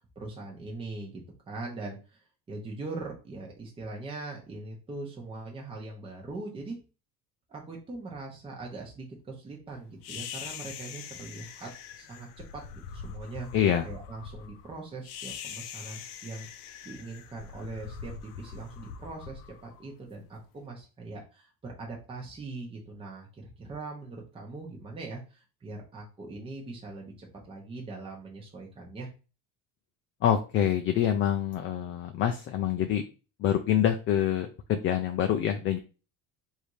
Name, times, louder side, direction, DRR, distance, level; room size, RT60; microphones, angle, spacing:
voice 1, 0.2-2.2 2.5-6.8 7.5-11.7 12.0-13.5 13.8-16.5 16.8-29.1, right 3 dB, 15° right, -2 dB, 0.9 m, -41 dB
sound 1, 10.0-20.4, left 7 dB, 85° left, 0.6 m, -43 dB
voice 2, 13.5-13.8 30.2-33.0 33.4-35.8, left 10 dB, 40° left, 6 dB, 0.4 m, -26 dB
3.4 x 2.7 x 4.6 m, 0.33 s
cardioid pair, 150°, 33 cm